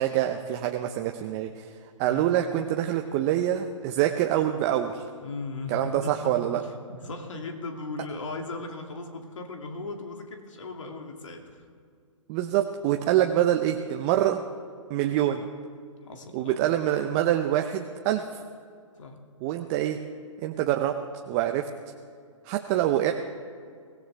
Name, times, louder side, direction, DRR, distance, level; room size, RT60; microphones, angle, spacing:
voice 1, 0.0-1.7 2.0-5.0 5.7-6.6 12.3-14.4 14.9-15.5 16.3-18.4 19.4-20.0 20.4-21.0 21.3-21.7 22.4-23.1, right 12 dB, 25° right, 5 dB, 0.7 m, -25 dB
voice 2, 5.2-6.6 6.9-11.4 16.1-16.5 19.0-19.2, left 3 dB, 70° left, 3 dB, 2.6 m, -37 dB
23.5 x 17.0 x 3.5 m, 2.2 s
hypercardioid pair, 135°, 17 cm